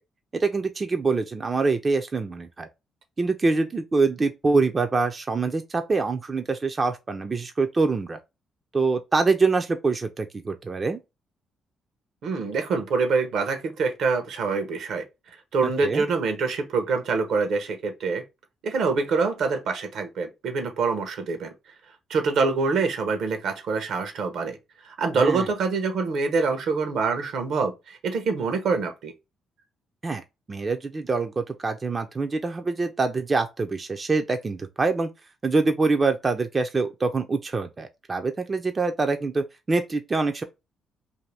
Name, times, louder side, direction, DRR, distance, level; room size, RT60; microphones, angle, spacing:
voice 1, 0.3-2.7 3.2-8.2 8.7-11.0 15.8-16.0 25.1-25.5 30.0-30.2 30.5-35.1 35.4-40.4, right 3 dB, 30° right, 0.4 m, -25 dB
voice 2, 12.2-15.0 15.5-18.2 18.6-21.5 22.1-24.6 24.8-29.1, right 4 dB, 70° right, 0.8 m, -25 dB
2.6 x 2.5 x 3.3 m
cardioid pair, 90°, 0 cm